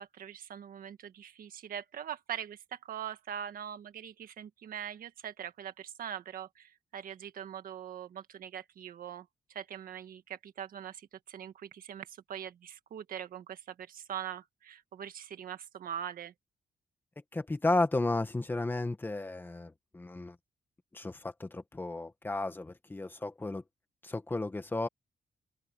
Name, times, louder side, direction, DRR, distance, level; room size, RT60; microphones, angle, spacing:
voice 1, 0.0-16.3, right 9 dB, 70° right, 1.6 m, -42 dB
voice 2, 17.3-20.4 20.9-23.6 24.0-24.9, left 2 dB, 15° left, 1.6 m, -33 dB
open air
wide cardioid pair, 170°, 15 cm